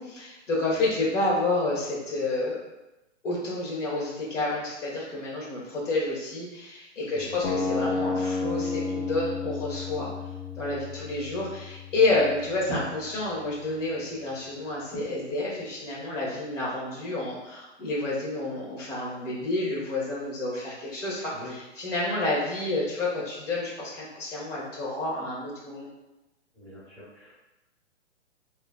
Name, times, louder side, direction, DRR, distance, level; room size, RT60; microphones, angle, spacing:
voice 1, 0.0-2.6 3.2-10.1 10.6-25.9, left 2 dB, 85° left, -5 dB, 1.3 m, -29 dB
sound 1, 7.4-13.4, left 4 dB, 60° left, 0.6 m, -32 dB
voice 2, 26.5-27.3, left 1 dB, 5° left, -12 dB, 0.8 m, -44 dB
3.0 x 2.3 x 2.2 m, 0.99 s
hypercardioid pair, 145°, 36 cm